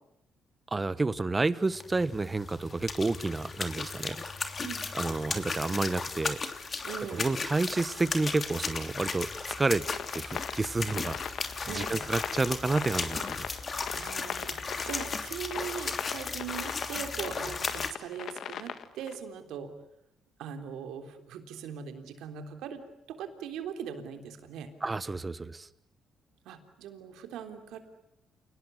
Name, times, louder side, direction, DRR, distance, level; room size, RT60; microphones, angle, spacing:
voice 1, 0.7-4.2 4.9-6.4 7.1-9.8 10.1-11.2 11.7-13.5 24.8-25.7, right 3 dB, 25° right, 16 dB, 1.3 m, -30 dB
sound 1, 1.7-17.9, left 4 dB, 40° left, 3.1 m, -36 dB
voice 2, 6.8-7.4 11.7-12.0 13.9-19.7 20.4-22.8 23.1-24.7 26.5-27.8, right 8 dB, 85° right, 6 dB, 3.6 m, -40 dB
sound 2, 9.4-19.2, left 9 dB, 65° left, 1.7 m, -39 dB
29.0 x 20.0 x 10.0 m, 0.80 s
cardioid pair, 90°, 0 cm